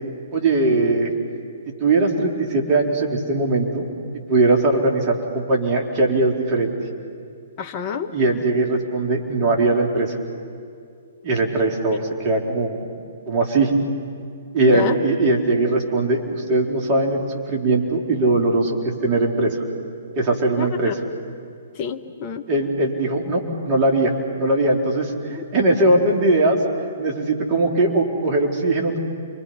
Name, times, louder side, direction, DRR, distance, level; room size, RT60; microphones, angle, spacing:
voice 1, 0.3-1.1 1.8-3.9 4.3-6.7 8.1-10.2 11.2-12.7 13.3-13.7 14.5-19.6 20.2-20.9 22.5-26.6 27.0-29.0, right 2 dB, 35° right, 0 dB, 3.8 m, -20 dB
voice 2, 7.6-8.1 14.6-15.0 20.6-20.9 21.7-22.5 25.3-25.4, left 7 dB, 35° left, 5 dB, 1.3 m, -27 dB
29.5 x 24.0 x 5.8 m, 2.3 s
figure-of-eight pair, 125°, 0 cm